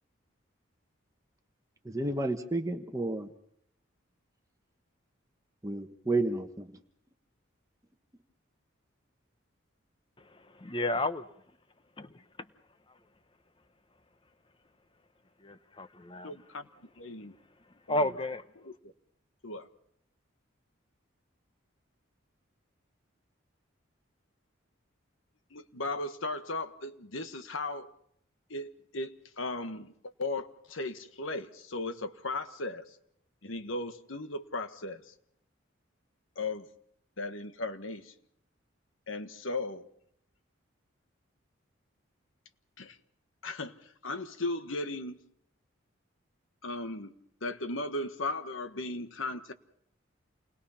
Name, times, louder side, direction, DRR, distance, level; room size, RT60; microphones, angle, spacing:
voice 1, 1.8-3.3 5.6-6.7, right 2 dB, 15° right, 5 dB, 1.2 m, -31 dB
voice 2, 10.6-11.2 12.0-12.1 15.4-16.3 17.9-18.4, left 1 dB, 25° left, 11 dB, 0.9 m, -31 dB
voice 3, 16.2-16.7 17.0-17.3 17.9-18.1 18.6-18.7 19.4-19.7 25.5-27.9 28.5-33.0 33.4-35.1 36.3-36.7 37.2-38.1 39.1-39.9 42.8-43.0 43.4-45.2 46.6-47.1 47.4-49.5, left 2 dB, 80° left, 9 dB, 1.4 m, -37 dB
28.5 x 20.5 x 5.7 m, 0.72 s
head